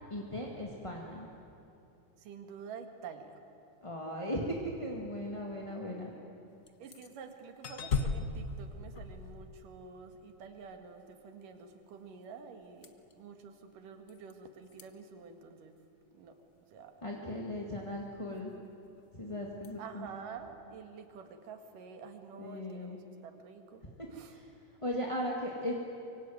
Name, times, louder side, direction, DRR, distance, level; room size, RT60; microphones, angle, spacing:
voice 1, 0.1-1.3 3.8-6.1 17.0-18.5 19.1-20.1 22.4-23.0 23.8-23.9 24.3-24.5 24.8-25.8, equal, 15° left, -1 dB, 1.5 m, -37 dB
voice 2, 2.2-3.4 6.8-15.8 16.1-16.4 16.7-17.0 19.8-23.8 24.1-24.3, right 6 dB, 90° right, 6 dB, 3.5 m, -48 dB
sound 1, 6.7-7.1 7.6-10.0 12.8-13.1 14.1-14.3 14.7-14.8 19.6-19.7, left 4 dB, 65° left, 0.8 m, -36 dB
24.5 x 24.0 x 9.4 m, 2.9 s
omnidirectional pair, 3.6 m